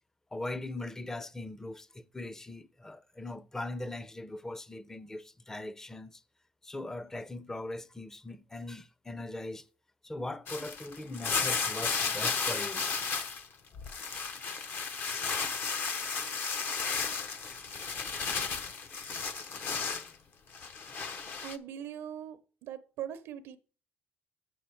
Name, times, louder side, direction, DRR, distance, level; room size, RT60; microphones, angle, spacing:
voice 1, 0.3-6.2 6.6-9.7 10.0-12.9, left 2 dB, 10° left, 0.5 m, -40 dB
sound 1, 10.5-13.5 13.7-20.1 20.5-21.6, left 5 dB, 50° left, 0.7 m, -34 dB
voice 2, 21.4-23.6, right 9 dB, 80° right, 0.6 m, -41 dB
7.8 x 6.6 x 4.5 m
cardioid pair, 110°, 4 cm